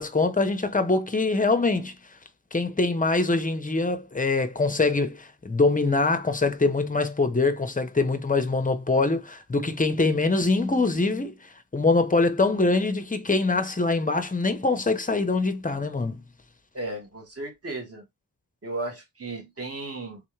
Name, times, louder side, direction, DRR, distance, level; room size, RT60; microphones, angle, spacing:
voice 1, 0.0-2.0 2.5-11.4 11.7-16.2, left 3 dB, 20° left, 0.6 m, -24 dB
voice 2, 16.7-18.0 18.6-20.2, right 2 dB, 35° right, 1.6 m, -35 dB
3.5 x 3.4 x 3.1 m
wide cardioid pair, 140°, 41 cm